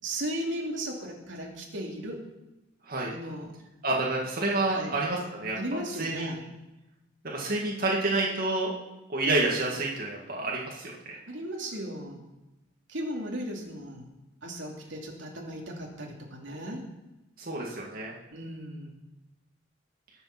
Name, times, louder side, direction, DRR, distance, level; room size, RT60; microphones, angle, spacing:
voice 1, 0.0-2.3 3.1-3.5 4.7-4.9 5.5-6.4 11.3-12.2 12.9-14.1 14.4-16.8 18.3-19.0, right 1 dB, 80° right, -1 dB, 2.8 m, -36 dB
voice 2, 3.8-5.6 6.0-6.5 7.3-8.7 9.1-10.9 17.4-18.1, right 2 dB, 50° right, -3 dB, 2.1 m, -28 dB
21.0 x 7.1 x 6.1 m, 0.99 s
head